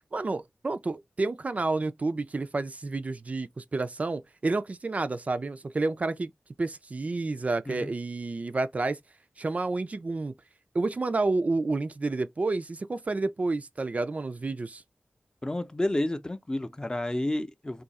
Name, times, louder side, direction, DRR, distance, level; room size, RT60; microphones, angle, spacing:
voice 1, 0.1-6.3 6.6-9.0 9.4-10.3 10.7-14.8, right 3 dB, 45° right, 0.4 m, -30 dB
voice 2, 15.4-17.8, left 1 dB, 25° left, 0.6 m, -30 dB
2.7 x 2.4 x 4.0 m
wide cardioid pair, 65°, 3 cm